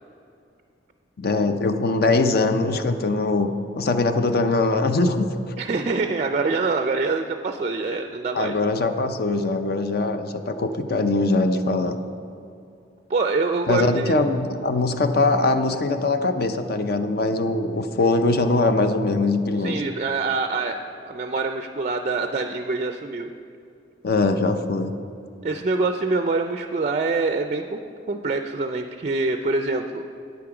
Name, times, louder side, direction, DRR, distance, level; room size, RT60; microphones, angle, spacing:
voice 1, 1.2-3.5 3.8-5.3 8.3-12.0 13.7-19.8 24.0-25.0, left 3 dB, 55° left, 8 dB, 0.5 m, -22 dB
voice 2, 5.6-8.5 13.1-14.1 19.6-20.8 21.1-23.3 25.4-27.8 28.1-30.0, right 3 dB, 35° right, 7 dB, 0.4 m, -25 dB
9.2 x 8.6 x 5.9 m, 2.5 s
head